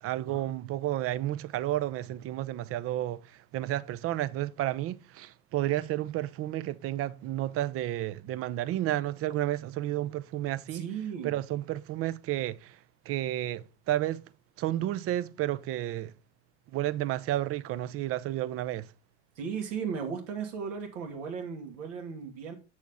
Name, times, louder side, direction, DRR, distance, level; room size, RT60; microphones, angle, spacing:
voice 1, 0.0-3.2 3.5-10.9 11.2-12.8 13.1-14.2 14.6-16.1 16.7-18.9, right 14 dB, 40° right, 0.5 m, -31 dB
voice 2, 10.7-11.4 19.4-22.5, right 6 dB, 80° right, 1.8 m, -36 dB
7.2 x 6.3 x 3.5 m
hypercardioid pair, 90°, 36 cm